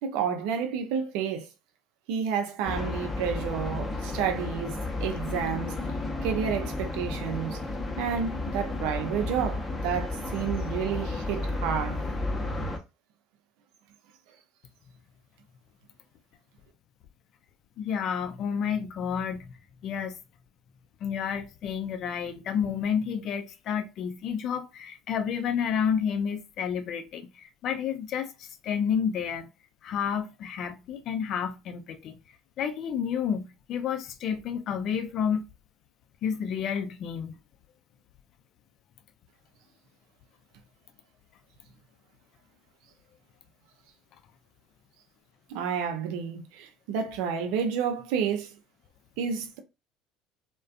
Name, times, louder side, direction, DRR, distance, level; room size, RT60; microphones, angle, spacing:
voice 1, 0.0-1.5 2.1-5.8 6.2-7.6 8.0-12.0 45.5-48.5 49.2-49.6, right 7 dB, 70° right, 0.5 m, -30 dB
sound 1, 2.7-12.8, left 2 dB, 20° left, 0.7 m, -32 dB
voice 2, 17.8-19.5 19.8-20.2 21.0-29.5 29.8-32.1 32.6-35.5 36.2-37.3, left 7 dB, 55° left, 0.4 m, -30 dB
2.4 x 2.2 x 2.4 m
hypercardioid pair, 70°, 0 cm